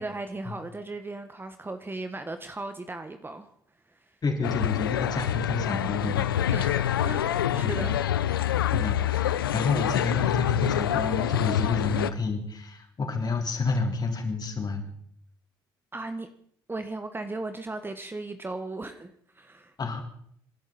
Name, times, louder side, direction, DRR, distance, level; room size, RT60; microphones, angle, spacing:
voice 1, 0.0-3.5 6.5-8.0 15.9-16.3 16.7-19.7, right 2 dB, 20° right, 8 dB, 1.4 m, -36 dB
voice 2, 4.2-6.5 7.5-7.9 8.7-14.9 19.8-20.0, left 4 dB, 35° left, 2 dB, 4.1 m, -29 dB
sound 1, 4.4-12.1, left 11 dB, 85° left, 0.5 m, -26 dB
28.0 x 12.0 x 4.2 m, 0.65 s
hypercardioid pair, 55°, 12 cm